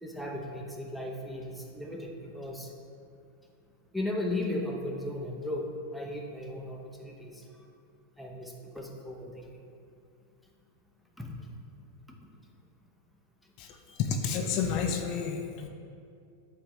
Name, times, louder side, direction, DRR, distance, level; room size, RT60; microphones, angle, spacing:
voice 1, 0.0-2.7 3.9-7.7 8.2-9.6 11.2-11.5 13.4-14.0, left 1 dB, ahead, -1 dB, 0.8 m, -37 dB
voice 2, 14.0-15.7, left 6 dB, 50° left, 4 dB, 0.5 m, -30 dB
8.3 x 3.7 x 3.1 m, 2.4 s
hypercardioid pair, 110°, 0 cm